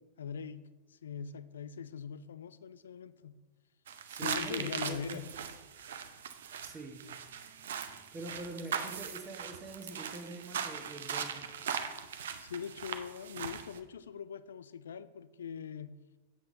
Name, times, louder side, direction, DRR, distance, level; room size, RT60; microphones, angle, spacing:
voice 1, 0.2-0.6 0.9-3.4 4.2-5.3 12.4-15.9, left 7 dB, 65° left, 15 dB, 0.4 m, -42 dB
sound 1, 3.9-13.8, right 7 dB, 60° right, 0.6 m, -40 dB
voice 2, 4.1-5.3 6.6-7.1 8.1-11.5, right 2 dB, 20° right, 4 dB, 1.1 m, -44 dB
8.2 x 7.6 x 3.7 m, 1.2 s
figure-of-eight pair, 90°, 0 cm